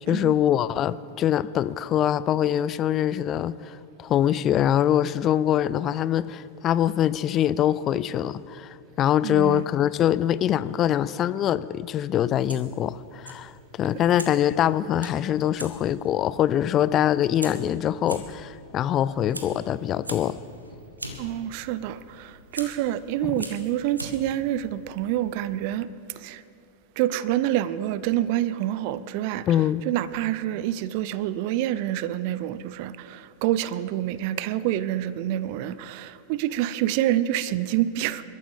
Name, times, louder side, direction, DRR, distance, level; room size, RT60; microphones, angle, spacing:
voice 1, 0.1-13.5 13.8-20.4 23.2-23.4 29.5-29.8, left 11 dB, 30° left, 17 dB, 0.4 m, -24 dB
voice 2, 9.2-9.6 21.2-25.9 26.2-26.4 27.0-29.4 29.9-38.2, right 13 dB, 45° right, 17 dB, 0.5 m, -27 dB
Fire, 12.3-25.7, right 1 dB, 80° right, 1.5 m, -43 dB
28.5 x 13.5 x 3.7 m, 2.6 s
figure-of-eight pair, 90°, 0 cm